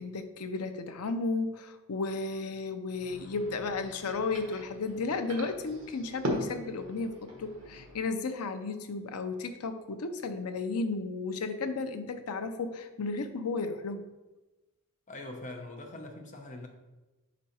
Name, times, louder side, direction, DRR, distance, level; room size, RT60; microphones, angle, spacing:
voice 1, 0.0-14.0, left 3 dB, 85° left, 8 dB, 0.6 m, -34 dB
sound 1, 2.9-8.0, equal, 60° right, 1.3 m, -40 dB
voice 2, 15.1-16.7, left 2 dB, 35° left, 3 dB, 0.8 m, -42 dB
5.4 x 5.1 x 4.2 m, 1.1 s
head